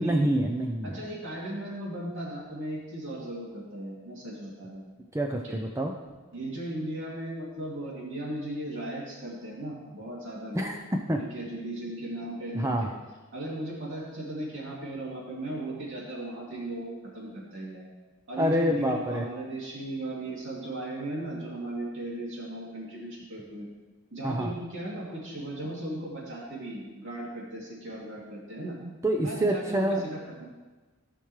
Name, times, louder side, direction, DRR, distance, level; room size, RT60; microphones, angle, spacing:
voice 1, 0.0-1.0 5.1-5.9 10.5-11.2 12.5-12.9 18.4-19.3 24.2-24.5 29.0-30.0, right 1 dB, 15° right, 3 dB, 0.5 m, -27 dB
voice 2, 0.8-4.8 5.4-5.6 6.3-10.7 11.3-12.7 13.3-17.8 18.3-23.7 24.1-28.8 29.2-30.5, right 1 dB, 65° right, -5 dB, 2.8 m, -36 dB
16.0 x 5.9 x 3.2 m, 1.3 s
head